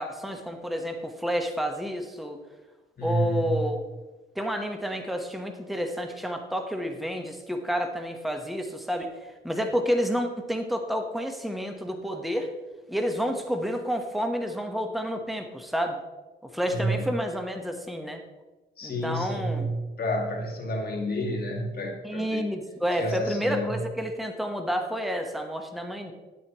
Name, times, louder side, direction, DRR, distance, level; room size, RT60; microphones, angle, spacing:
voice 1, 0.0-2.4 3.0-3.8 4.3-9.1 9.4-12.5 12.9-16.0 16.5-18.2 18.8-19.7 22.0-26.1, equal, ahead, 4 dB, 1.1 m, -30 dB
voice 2, 3.0-3.7 16.7-17.1 18.8-22.5 23.0-23.8, equal, 50° left, 0 dB, 2.1 m, -30 dB
11.0 x 7.9 x 3.0 m, 1.2 s
cardioid pair, 90°, 20 cm